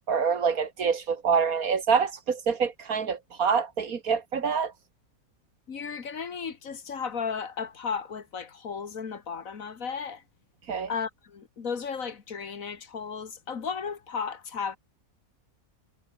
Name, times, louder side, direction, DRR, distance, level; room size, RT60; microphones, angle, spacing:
voice 1, 0.1-4.7 10.7-10.9, right 6 dB, 75° right, 2.2 m, -26 dB
voice 2, 5.7-10.2 10.9-14.8, left 6 dB, 65° left, 2.1 m, -34 dB
omnidirectional pair, 1.5 m